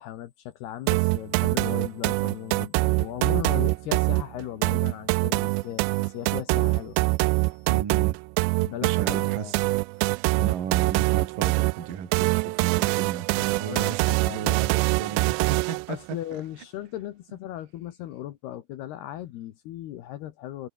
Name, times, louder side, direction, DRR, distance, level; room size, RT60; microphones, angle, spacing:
voice 1, 0.0-7.7 8.6-9.5 13.7-14.7 15.9-20.7, left 13 dB, 70° left, 3.2 m, -37 dB
sound 1, 0.9-15.9, right 24 dB, 85° right, 2.7 m, -24 dB
voice 2, 7.7-8.2 8.8-9.6 10.3-16.0, right 8 dB, 55° right, 4.3 m, -34 dB
omnidirectional pair, 5.0 m